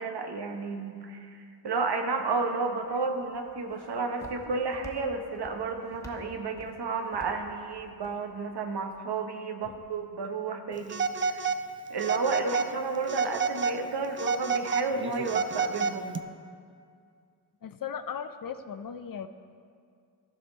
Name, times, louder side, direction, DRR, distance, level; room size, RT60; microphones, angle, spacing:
voice 1, 0.0-11.5 11.9-16.2, right 4 dB, 70° right, 5 dB, 1.0 m, -32 dB
Walk footsteps, 2.8-9.0, equal, 5° left, 1.2 m, -51 dB
Telephone, 10.9-11.6 12.0-12.7 13.1-13.8 14.2-16.2, right 5 dB, 30° right, 0.4 m, -29 dB
voice 2, 17.6-19.3, left 7 dB, 55° left, 11 dB, 0.5 m, -37 dB
14.5 x 5.2 x 4.2 m, 2.2 s
cardioid pair, 60°, 42 cm